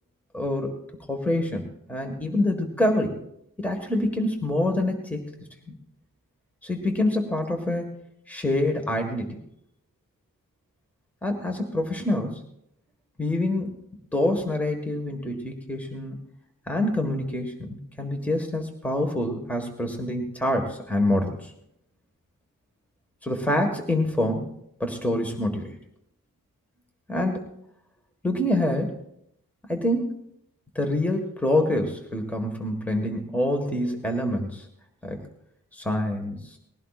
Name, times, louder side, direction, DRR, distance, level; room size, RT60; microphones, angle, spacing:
voice 1, 0.3-0.7 1.1-3.2 3.6-5.8 6.6-7.9 8.3-9.4 11.2-12.4 13.2-13.7 14.1-16.2 16.7-21.5 23.2-24.4 24.8-25.7 27.1-27.5 28.2-29.0 29.7-30.1 30.7-34.7 35.0-35.2 35.7-36.6, left 1 dB, 5° left, 3 dB, 1.6 m, -26 dB
20.5 x 16.0 x 2.5 m, 0.75 s
wide cardioid pair, 100°, 33 cm